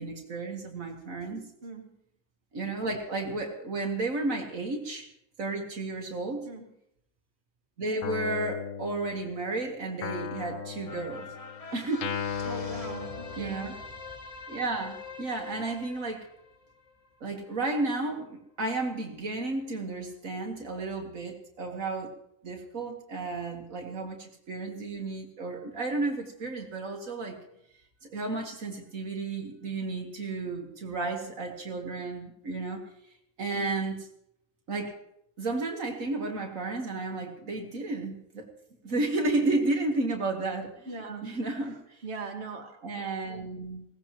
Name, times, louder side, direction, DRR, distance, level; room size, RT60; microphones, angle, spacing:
voice 1, 0.0-1.5 2.5-5.1 5.4-6.5 7.8-11.3 11.7-12.1 13.4-13.7 14.5-16.3 17.2-22.1 22.4-27.4 28.0-32.8 33.4-34.1 34.7-34.9 35.4-38.5 38.8-42.0 42.8-43.8, right 2 dB, 65° right, 2 dB, 1.8 m, -32 dB
Guitar, 8.0-9.5 10.0-13.9, left 7 dB, 65° left, 1.1 m, -37 dB
sound 1, 10.8-17.5 17.9-18.0, left 4 dB, 30° left, 0.9 m, -44 dB
voice 2, 12.4-13.7 33.5-33.7 40.9-41.2 42.0-42.8, right 3 dB, 45° right, 2 dB, 1.8 m, -40 dB
21.0 x 17.0 x 3.0 m, 0.78 s
omnidirectional pair, 1.5 m